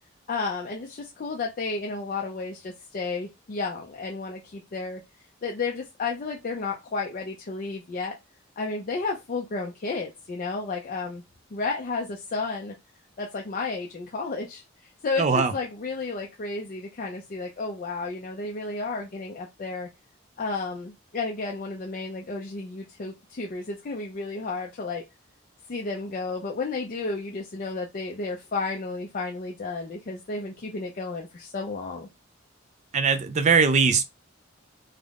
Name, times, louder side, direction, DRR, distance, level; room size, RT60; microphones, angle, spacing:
voice 1, 0.3-5.0 5.4-8.2 8.6-11.2 11.5-12.7 13.2-19.9 20.4-25.0 25.7-32.1, left 3 dB, 45° left, 0.4 m, -32 dB
voice 2, 15.2-15.5 32.9-34.0, right 5 dB, 35° right, 0.4 m, -20 dB
3.5 x 2.0 x 3.5 m
head